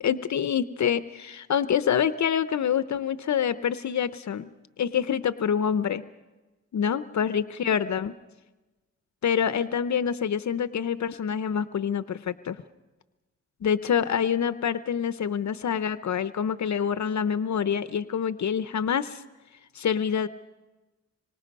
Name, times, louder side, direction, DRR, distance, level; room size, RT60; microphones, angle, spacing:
voice 1, 0.0-4.5 4.8-6.0 6.7-8.1 9.2-12.6 13.6-19.2 19.7-20.3, left 8 dB, 75° left, 12 dB, 0.7 m, -26 dB
26.0 x 24.5 x 5.3 m, 1.1 s
wide cardioid pair, 80°, 29 cm